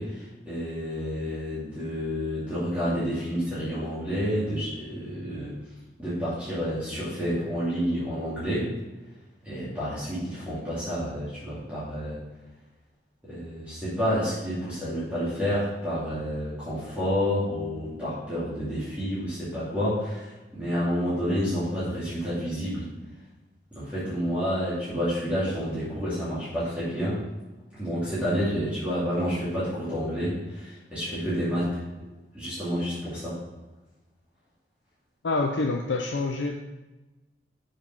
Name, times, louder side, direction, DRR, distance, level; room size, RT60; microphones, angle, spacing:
voice 1, 0.0-5.5 6.0-8.7 9.4-12.2 13.2-22.9 23.7-27.2 27.7-31.8 32.3-33.4, equal, 5° right, -13 dB, 2.7 m, -29 dB
voice 2, 35.2-36.5, left 3 dB, 85° left, 2 dB, 0.6 m, -26 dB
7.2 x 5.3 x 5.3 m, 1.1 s
head